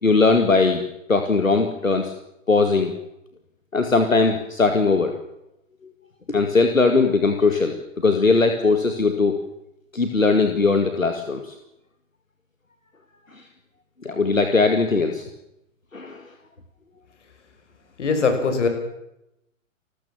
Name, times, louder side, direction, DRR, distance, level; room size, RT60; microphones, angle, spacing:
voice 1, 0.0-2.1 2.5-2.9 3.7-5.1 6.3-7.8 8.0-9.4 9.9-11.5 14.0-15.2 15.9-16.2, left 3 dB, 90° left, 6 dB, 2.1 m, -19 dB
voice 2, 18.0-18.7, left 4 dB, 60° left, 7 dB, 5.9 m, -21 dB
29.0 x 14.0 x 7.3 m, 0.86 s
figure-of-eight pair, 115°, 39 cm